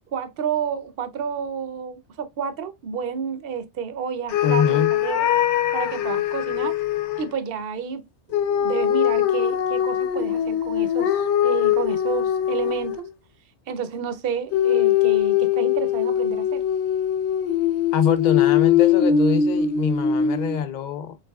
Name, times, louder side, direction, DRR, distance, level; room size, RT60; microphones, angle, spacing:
voice 1, 0.1-5.3 5.7-6.7 7.2-8.0 8.3-13.1 13.7-16.6, right 7 dB, 60° right, 0.8 m, -30 dB
sound 1, 4.3-7.3 8.3-13.1 14.5-20.6, left 9 dB, 90° left, 0.9 m, -21 dB
voice 2, 4.4-4.9 17.9-21.2, left 7 dB, 55° left, 0.5 m, -24 dB
4.0 x 3.6 x 2.2 m
omnidirectional pair, 1.1 m